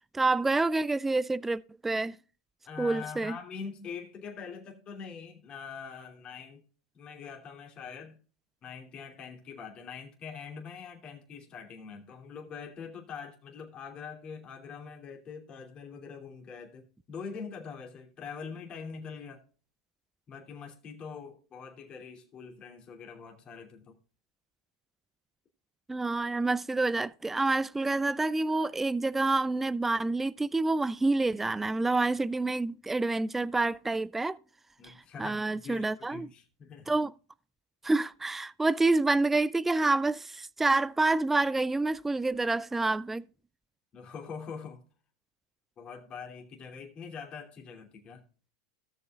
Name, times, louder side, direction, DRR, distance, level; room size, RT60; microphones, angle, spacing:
voice 1, 0.1-2.2 2.8-3.4 25.9-34.4 34.8-34.9 35.2-36.3 36.9-37.1 37.8-43.2, right 2 dB, 10° right, 0.3 m, -28 dB
voice 2, 2.6-6.6 6.9-8.2 8.6-19.4 20.3-24.0 34.8-36.9 43.9-44.8 45.8-48.2, left 6 dB, 30° left, 2.8 m, -43 dB
17.5 x 7.0 x 2.4 m
hypercardioid pair, 115°, 3 cm